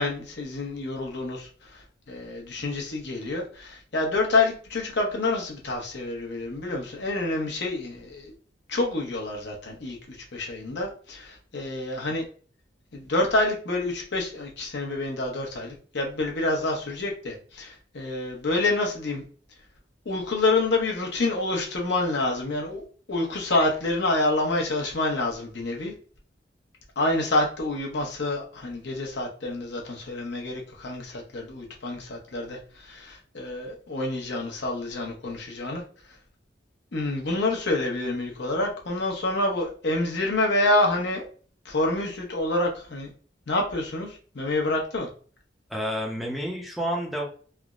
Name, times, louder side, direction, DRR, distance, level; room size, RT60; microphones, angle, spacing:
voice 1, 0.0-8.3 8.7-12.2 12.9-19.2 20.0-22.8 23.1-25.9 27.0-35.8 36.9-41.2 41.6-43.1 43.5-45.1, left 2 dB, 70° left, 0 dB, 0.8 m, -27 dB
voice 2, 45.7-47.3, equal, ahead, -2 dB, 0.6 m, -29 dB
3.3 x 2.0 x 2.4 m, 0.41 s
head